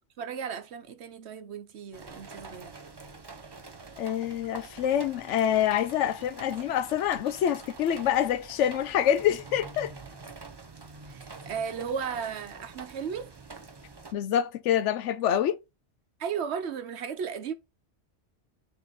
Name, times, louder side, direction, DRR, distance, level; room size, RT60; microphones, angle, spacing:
voice 1, 0.2-2.8 11.1-13.3 16.2-17.5, right 7 dB, 70° right, 1.0 m, -35 dB
sound 1, 1.9-14.1, right 3 dB, 25° right, 0.7 m, -46 dB
voice 2, 4.0-9.9 14.1-15.6, left 10 dB, 80° left, 0.9 m, -26 dB
6.8 x 3.7 x 4.0 m
omnidirectional pair, 1.2 m